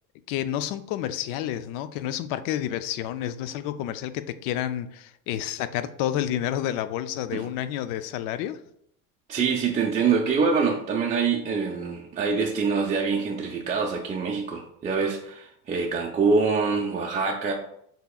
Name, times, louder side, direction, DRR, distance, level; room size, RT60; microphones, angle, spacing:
voice 1, 0.3-8.6, left 11 dB, 65° left, 12 dB, 0.5 m, -30 dB
voice 2, 9.3-17.5, right 5 dB, 20° right, -1 dB, 0.4 m, -25 dB
6.5 x 2.9 x 2.3 m, 0.71 s
cardioid pair, 130°, 36 cm